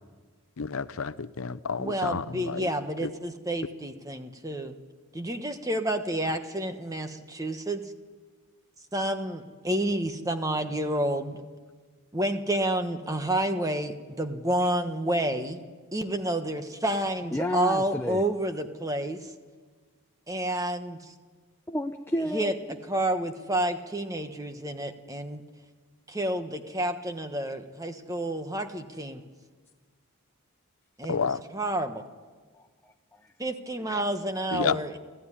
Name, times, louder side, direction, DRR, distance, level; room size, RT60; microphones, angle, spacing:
voice 1, 0.6-2.7 3.0-3.1 31.1-31.4 34.5-34.8, left 5 dB, 75° left, 13 dB, 0.7 m, -30 dB
voice 2, 1.8-4.7 5.1-7.8 8.9-11.4 12.1-15.6 15.9-19.3 20.3-21.1 22.3-22.5 22.8-25.4 26.1-29.2 31.0-32.0 33.4-35.0, right 1 dB, 15° right, 7 dB, 1.2 m, -29 dB
voice 3, 17.3-18.2 21.7-22.5 32.6-33.2, left 1 dB, 10° left, 4 dB, 0.6 m, -31 dB
28.0 x 14.5 x 10.0 m, 1.5 s
head